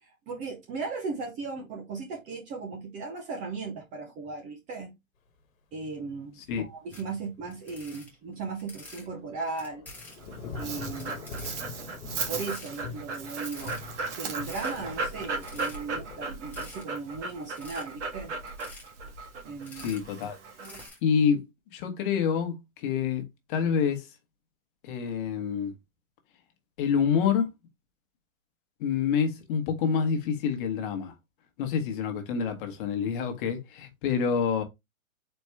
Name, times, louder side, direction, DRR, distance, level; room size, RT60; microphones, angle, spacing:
voice 1, 0.0-4.9 5.7-9.9 10.6-11.2 12.3-13.8 14.2-18.4 19.4-19.9, right 4 dB, 20° right, 0.6 m, -37 dB
sound 1, 6.9-7.1 7.5-9.1 9.6-10.2 10.8-11.8 12.2-12.7 13.1-13.2 13.4-14.0 14.4-14.8 15.3-16.0 16.5-16.8 17.4-17.8 18.5-18.9 19.4-20.3 20.6-21.0, left 2 dB, 5° left, 1.2 m, -48 dB
Thunder / Rain, 8.9-16.3, left 4 dB, 70° left, 1.3 m, -43 dB
Dog, 10.1-20.9, right 3 dB, 60° right, 1.6 m, -36 dB
voice 2, 19.8-20.4 21.0-21.4 21.7-23.2 23.5-24.1 24.8-25.8 26.8-27.5 28.8-31.1 31.6-34.6, left 7 dB, 40° left, 1.3 m, -27 dB
4.4 x 3.0 x 3.4 m
hypercardioid pair, 140°, 41 cm